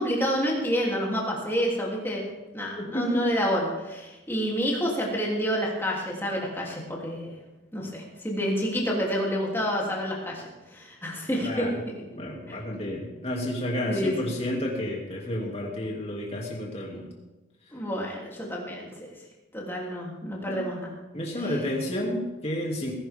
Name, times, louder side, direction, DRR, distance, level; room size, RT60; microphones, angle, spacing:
voice 1, 0.0-2.2 2.5-7.3 7.7-11.9 12.5-12.6 13.9-14.3 17.7-19.1 19.5-20.9 21.4-21.6, equal, 10° left, -3 dB, 3.2 m, -29 dB
voice 2, 2.8-3.3 11.4-11.7 12.1-17.0 20.5-20.6 21.1-22.9, left 1 dB, 35° left, -1 dB, 2.8 m, -31 dB
19.5 x 11.0 x 3.7 m, 1.1 s
head